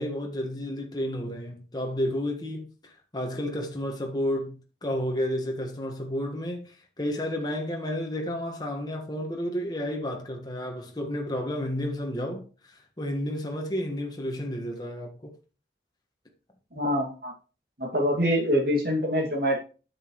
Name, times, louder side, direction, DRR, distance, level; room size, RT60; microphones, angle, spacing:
voice 1, 0.0-12.4 13.0-15.3, equal, 25° left, 1.5 m, -31 dB
voice 2, 16.7-17.3 17.8-19.6, equal, 60° right, 2.4 m, -25 dB
9.5 x 7.2 x 3.1 m
head